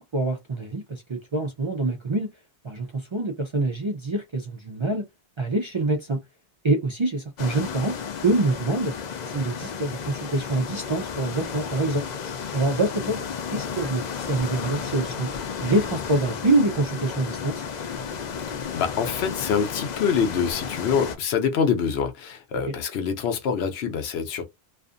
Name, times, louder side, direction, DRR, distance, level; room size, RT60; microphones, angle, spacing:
voice 1, 0.1-2.3 2.6-5.0 5.4-6.2 6.6-8.0 8.2-8.9 9.3-12.1 12.5-13.3 13.5-15.3 15.6-17.6, right 2 dB, 45° right, 0.4 m, -25 dB
sound 1, 7.4-21.2, left 6 dB, 55° left, 0.5 m, -33 dB
voice 2, 18.7-24.4, left 6 dB, 85° left, 0.9 m, -25 dB
2.5 x 2.4 x 2.4 m
omnidirectional pair, 1.0 m